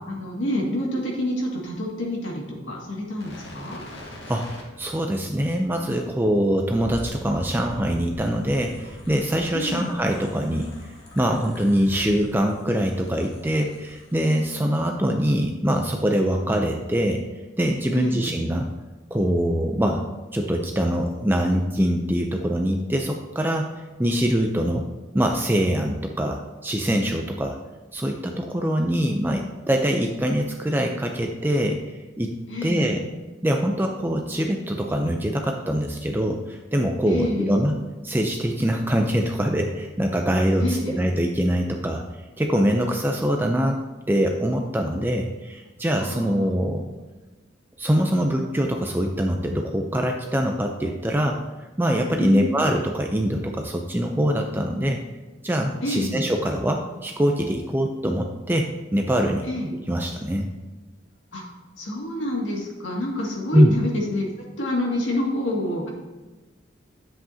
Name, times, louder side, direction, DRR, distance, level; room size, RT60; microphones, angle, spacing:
voice 1, 0.1-3.8 9.5-9.9 17.9-18.3 32.5-33.0 37.1-37.6 40.6-41.0 46.0-46.5 52.2-52.6 55.8-56.2 59.5-59.7 61.3-61.4 61.8-65.9, left 1 dB, 80° left, -2 dB, 2.1 m, -28 dB
sound 1, 3.2-14.4 14.7-14.9, equal, 65° left, 2.1 m, -43 dB
voice 2, 4.8-10.7 11.2-17.2 17.6-18.7 19.1-20.0 20.3-23.7 24.0-24.9 25.1-27.6 27.9-31.8 32.2-32.4 32.6-33.0 33.4-37.8 38.0-42.0 42.4-43.8 44.1-46.9 47.8-51.4 51.8-55.0 55.4-59.5 59.9-60.5 63.5-63.8, equal, 10° right, 2 dB, 0.5 m, -23 dB
10.5 x 7.8 x 2.8 m, 1.2 s
head